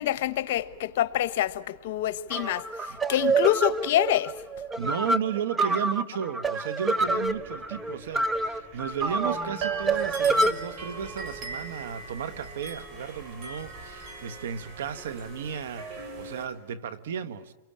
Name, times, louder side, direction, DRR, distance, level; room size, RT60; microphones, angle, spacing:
voice 1, 0.0-2.7 3.1-4.3, left 12 dB, 65° left, 1.2 m, -26 dB
sound 1, 2.3-10.5, right 3 dB, 10° right, 0.8 m, -27 dB
voice 2, 4.8-17.5, right 8 dB, 80° right, 1.3 m, -34 dB
sound 2, 7.0-16.5, right 4 dB, 40° right, 6.9 m, -40 dB
29.0 x 23.0 x 8.7 m
hypercardioid pair, 130°, 0 cm